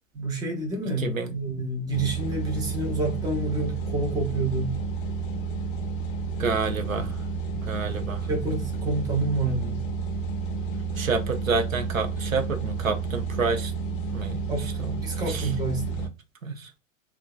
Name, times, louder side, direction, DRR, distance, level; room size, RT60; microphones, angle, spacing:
voice 1, 0.1-4.8 8.3-9.9 14.5-16.0, right 2 dB, 10° right, 0.6 m, -29 dB
voice 2, 1.0-1.3 6.4-7.2 7.5-8.3 11.0-13.7 14.1-15.0 15.3-15.5 16.4-16.7, right 4 dB, 80° right, 0.7 m, -29 dB
sound 1, 1.9-16.1, right 4 dB, 40° left, 0.5 m, -31 dB
2.7 x 2.2 x 2.2 m
figure-of-eight pair, 95°, 40 cm